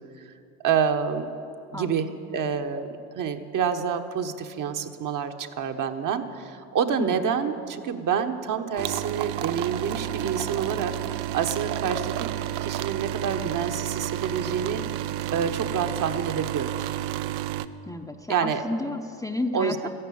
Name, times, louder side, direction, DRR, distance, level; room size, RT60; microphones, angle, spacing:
voice 1, 0.6-1.3 1.7-12.3 12.6-14.8 15.3-16.7 18.3-18.6 19.5-19.9, right 7 dB, 45° right, 6 dB, 1.2 m, -28 dB
voice 2, 1.7-2.2 7.0-7.3 17.9-19.9, left 1 dB, 10° left, 4 dB, 0.8 m, -32 dB
sound 1, 8.8-17.7, right 13 dB, 65° right, 0.8 m, -31 dB
14.0 x 11.5 x 8.6 m, 2.5 s
hypercardioid pair, 80°, 45 cm